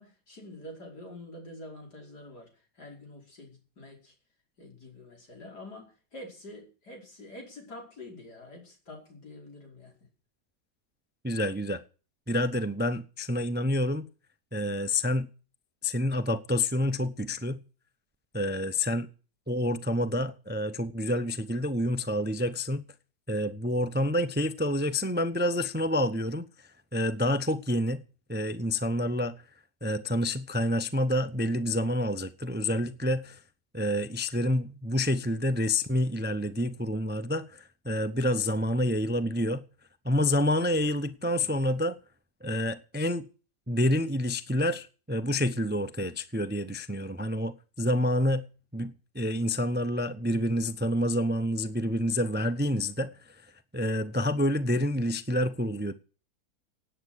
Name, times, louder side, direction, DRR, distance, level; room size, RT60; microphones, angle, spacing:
voice 1, 0.0-4.1 4.6-9.9, left 1 dB, 85° left, 5.6 m, -46 dB
voice 2, 11.2-11.8 12.3-14.1 14.5-15.3 15.8-17.6 18.3-19.1 19.5-22.8 23.3-26.5 26.9-28.0 28.3-29.3 29.8-33.4 33.7-39.6 40.0-42.0 42.4-43.2 43.7-48.4 48.7-53.4 53.7-55.9, left 1 dB, 10° right, 0.5 m, -28 dB
18.0 x 8.9 x 6.4 m
omnidirectional pair, 1.7 m